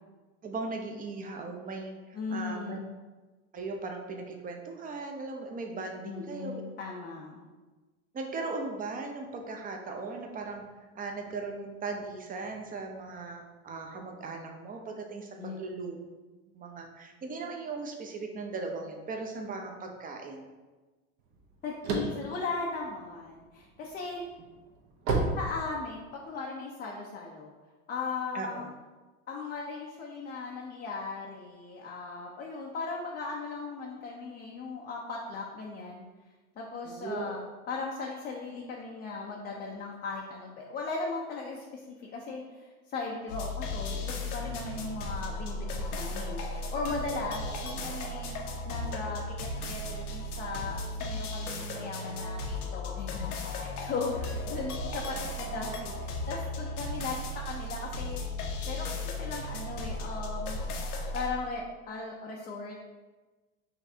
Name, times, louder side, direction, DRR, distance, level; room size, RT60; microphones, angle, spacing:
voice 1, 0.4-1.9 2.3-2.8 3.5-6.6 8.1-10.6 10.9-16.0 16.5-20.5 28.3-28.6 36.8-37.3, right 3 dB, 20° right, 3 dB, 0.6 m, -38 dB
voice 2, 2.1-2.9 6.0-7.4 15.4-15.6 21.6-24.2 25.4-27.5 27.9-28.7 29.3-36.0 36.6-48.3 48.6-58.2 58.6-58.9 59.2-60.6 61.1-62.8, left 4 dB, 20° left, -2 dB, 0.5 m, -37 dB
sound 1, 21.3-23.5 24.0-26.2, right 3 dB, 50° right, 1.0 m, -31 dB
sound 2, 43.3-61.3, left 2 dB, 80° left, 0.8 m, -36 dB
5.8 x 3.2 x 2.7 m, 1.3 s
hypercardioid pair, 90°, 44 cm